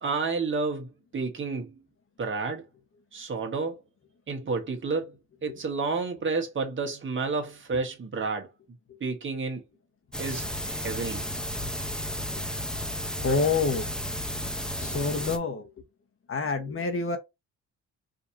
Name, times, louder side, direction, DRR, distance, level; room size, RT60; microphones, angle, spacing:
voice 1, 0.0-1.7 2.2-2.6 3.1-3.8 4.3-5.1 5.4-8.5 9.0-9.6 10.2-11.2, right 4 dB, 40° right, 1.5 m, -30 dB
sound 1, 10.1-15.4, equal, 5° left, 0.8 m, -33 dB
voice 2, 13.2-13.9 14.8-15.7 16.3-17.2, left 4 dB, 45° left, 1.2 m, -27 dB
5.1 x 2.9 x 2.8 m
cardioid pair, 90°, 30 cm